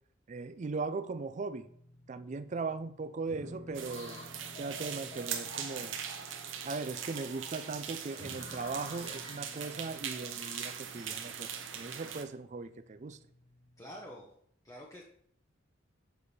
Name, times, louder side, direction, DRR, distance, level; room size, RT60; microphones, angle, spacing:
voice 1, 0.3-1.7 2.1-4.2 4.6-6.0 6.6-13.2, right 4 dB, 35° right, 0.4 m, -39 dB
sound 1, 1.6-14.2, left 1 dB, 60° left, 1.8 m, -55 dB
sound 2, 3.7-12.1, equal, 30° left, 1.6 m, -53 dB
sound 3, 3.7-12.2, right 8 dB, 70° right, 0.8 m, -41 dB
voice 2, 13.8-14.3 14.6-15.0, equal, 15° left, 0.8 m, -47 dB
6.8 x 4.6 x 4.2 m
head